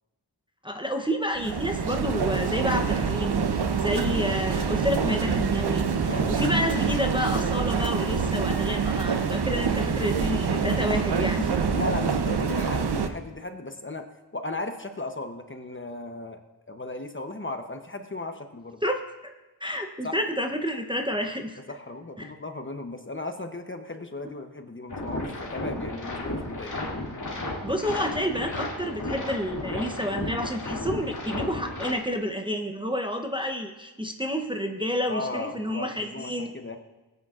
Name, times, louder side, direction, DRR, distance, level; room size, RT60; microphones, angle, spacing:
voice 1, 0.6-3.4 3.8-5.9 6.3-11.6 18.8-19.3 19.6-21.6 22.2-22.3 27.6-36.5, equal, 10° right, 3 dB, 0.7 m, -29 dB
sound 1, 1.3-13.1, right 5 dB, 60° right, 0.8 m, -26 dB
voice 2, 11.7-14.1 14.3-16.4 16.7-18.8 20.0-20.2 21.6-26.7 35.1-36.8, left 2 dB, 25° left, 6 dB, 0.8 m, -36 dB
sound 2, 24.9-31.9, left 2 dB, 40° left, 2.4 m, -33 dB
20.0 x 8.8 x 2.4 m, 1.1 s
wide cardioid pair, 95°, 46 cm